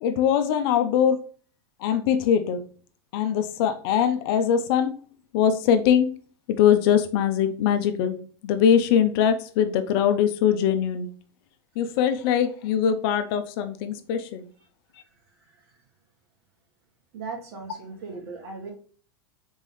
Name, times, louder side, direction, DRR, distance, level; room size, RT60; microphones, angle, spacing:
voice 1, 0.0-1.2 1.8-2.6 3.1-5.0 5.3-6.1 6.5-8.2 8.4-11.1 11.8-14.4, left 8 dB, 60° left, 9 dB, 0.8 m, -22 dB
voice 2, 15.4-15.7 17.1-18.7, right 4 dB, 70° right, 0 dB, 2.2 m, -38 dB
4.3 x 3.8 x 3.2 m, 0.42 s
supercardioid pair, 120°, 14 cm